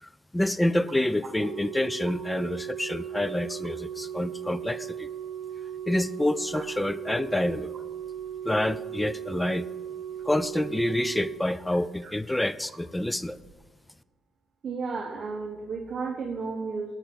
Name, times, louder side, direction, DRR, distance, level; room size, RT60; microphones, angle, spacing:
voice 1, 0.0-5.1 5.9-7.7 8.4-9.7 10.2-13.4, left 1 dB, 10° left, 16 dB, 0.4 m, -27 dB
Organ, 1.3-12.2 13.3-13.5, right 9 dB, 85° right, 0.9 m, -38 dB
voice 2, 14.6-16.9, right 4 dB, 45° right, 2 dB, 1.4 m, -33 dB
12.0 x 5.9 x 8.0 m, 1.3 s
cardioid pair, 90°, 0 cm